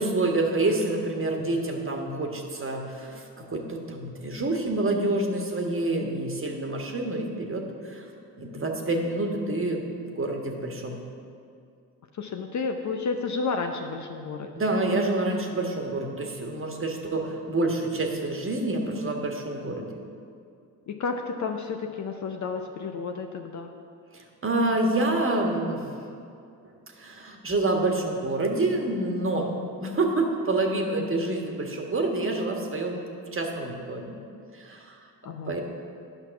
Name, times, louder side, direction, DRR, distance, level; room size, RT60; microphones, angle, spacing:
voice 1, 0.0-8.1 8.4-11.0 14.5-19.9 24.1-25.8 27.0-29.5 29.8-33.0 33.3-34.1 34.5-35.6, right 2 dB, 25° right, 2 dB, 1.6 m, -27 dB
voice 2, 12.2-14.5 20.9-23.7 35.2-35.6, left 4 dB, 35° left, 5 dB, 0.7 m, -31 dB
9.9 x 5.8 x 5.8 m, 2.4 s
hypercardioid pair, 55°, 48 cm